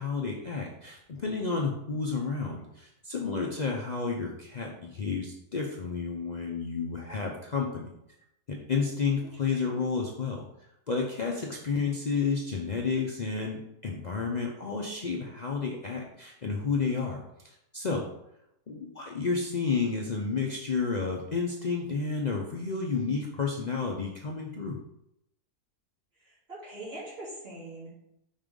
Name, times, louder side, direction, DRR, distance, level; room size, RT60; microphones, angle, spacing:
voice 1, 0.0-7.9 8.5-10.4 10.9-17.2 17.7-18.1 18.7-24.8, left 5 dB, 90° left, 0 dB, 0.3 m, -31 dB
voice 2, 26.2-27.9, right 1 dB, 40° right, -8 dB, 2.9 m, -42 dB
5.3 x 3.7 x 5.1 m, 0.81 s
omnidirectional pair, 1.7 m